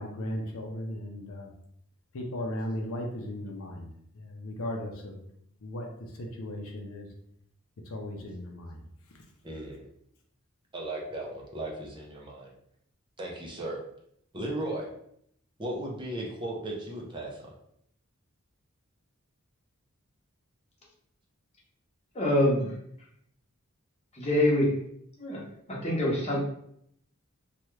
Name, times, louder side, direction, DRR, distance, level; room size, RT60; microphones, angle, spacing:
voice 1, 0.0-1.5 2.1-3.9 4.2-5.1 5.6-5.9 6.2-7.1 7.9-8.8, left 1 dB, 65° left, 1 dB, 0.6 m, -36 dB
voice 2, 9.4-9.8 10.7-12.5 13.2-13.8 14.3-14.9 15.6-17.5, right 1 dB, 20° right, -2 dB, 0.5 m, -36 dB
voice 3, 22.1-22.7 24.1-24.8 25.2-25.4 25.7-26.4, left 1 dB, 30° left, -4 dB, 0.9 m, -25 dB
2.9 x 2.3 x 3.1 m, 0.70 s
head